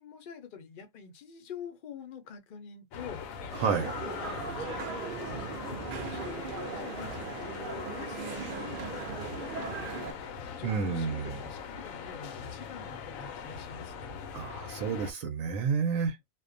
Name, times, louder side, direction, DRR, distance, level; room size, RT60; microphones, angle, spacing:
voice 1, 0.0-14.1, left 7 dB, 50° left, 0.7 m, -46 dB
sound 1, 2.9-15.1, left 6 dB, 90° left, 1.0 m, -41 dB
sound 2, 3.5-10.1, right 6 dB, 60° right, 0.5 m, -39 dB
voice 2, 3.6-3.9 10.6-11.3 14.3-16.2, right 6 dB, 85° right, 1.0 m, -30 dB
2.5 x 2.1 x 2.5 m
omnidirectional pair, 1.4 m